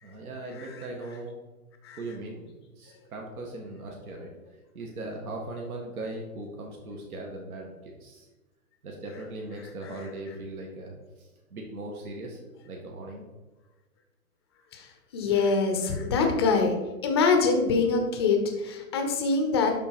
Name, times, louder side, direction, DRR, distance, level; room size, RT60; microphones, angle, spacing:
voice 1, 0.0-1.4 2.0-2.5 2.8-4.3 4.7-8.3 8.8-12.4 12.7-13.3, right 2 dB, 70° right, 0 dB, 1.8 m, -39 dB
voice 2, 15.1-16.7 17.0-19.7, left 4 dB, 20° left, 4 dB, 0.6 m, -24 dB
11.5 x 3.9 x 4.5 m, 1.2 s
hypercardioid pair, 160°, 45 cm